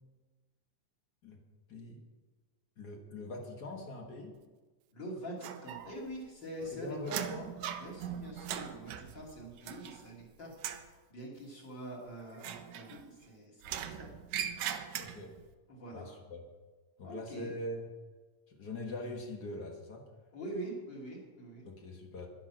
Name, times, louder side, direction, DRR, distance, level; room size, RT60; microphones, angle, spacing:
voice 1, 1.7-2.0 2.8-4.3 6.7-7.5 15.0-15.3 15.9-16.4 17.0-17.9 18.5-20.0 21.6-22.3, left 2 dB, 55° left, 2 dB, 1.1 m, -42 dB
voice 2, 4.9-7.2 7.8-10.5 10.8-14.1 15.7-16.1 17.0-17.5 20.3-21.7, right 1 dB, 35° left, -2 dB, 3.3 m, -44 dB
sound 1, 5.4-6.2 6.5-10.2 10.5-10.9 12.3-13.2 13.6-15.4, right 9 dB, 75° right, 2.1 m, -40 dB
12.0 x 10.5 x 6.3 m, 1.3 s
omnidirectional pair, 4.0 m